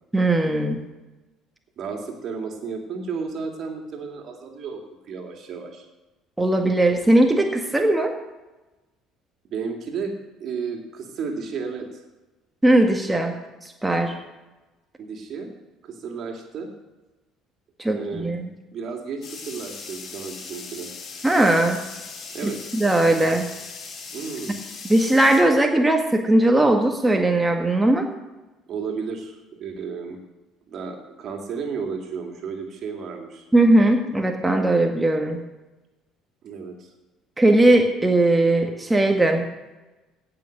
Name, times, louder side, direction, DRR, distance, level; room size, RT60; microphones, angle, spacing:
voice 1, 0.1-0.8 6.4-8.1 12.6-13.4 13.6-14.1 17.8-18.5 21.2-21.8 22.4-23.5 24.9-28.1 33.5-35.4 37.4-39.4, right 1 dB, 10° right, 3 dB, 1.7 m, -19 dB
voice 2, 1.8-4.8 5.1-5.9 9.5-10.1 10.4-12.0 15.0-15.5 15.8-16.7 17.8-18.3 18.7-20.9 22.3-22.6 24.1-24.6 28.7-30.2 30.7-33.5 36.4-36.9, right 5 dB, 50° right, 3 dB, 2.6 m, -33 dB
sound 1, 19.2-25.4, left 4 dB, 50° left, 4.8 m, -39 dB
17.0 x 6.4 x 6.7 m, 1.1 s
hypercardioid pair, 60°, 0 cm